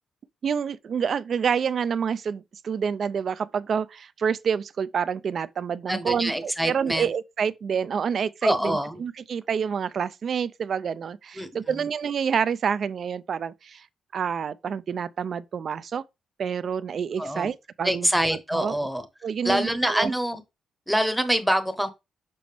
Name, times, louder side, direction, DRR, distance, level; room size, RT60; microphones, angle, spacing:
voice 1, 0.4-13.9 14.1-16.0 16.4-18.8 19.2-20.1, right 7 dB, 45° right, 0.4 m, -28 dB
voice 2, 5.9-7.1 8.4-9.0 11.4-11.9 17.2-17.5 17.8-19.1 19.4-20.4 20.9-21.9, equal, ahead, 0.8 m, -25 dB
6.8 x 5.0 x 3.4 m
wide cardioid pair, 160°, 0 cm